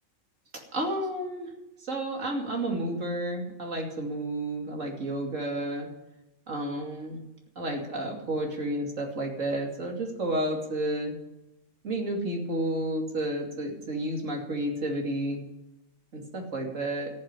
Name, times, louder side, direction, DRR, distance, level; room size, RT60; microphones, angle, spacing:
voice 1, 0.7-1.5 1.8-5.9 6.5-7.2 7.6-11.2 11.8-15.4 16.1-17.1, right 1 dB, 70° right, 0 dB, 3.0 m, -31 dB
14.0 x 7.8 x 9.7 m, 0.94 s
omnidirectional pair, 1.4 m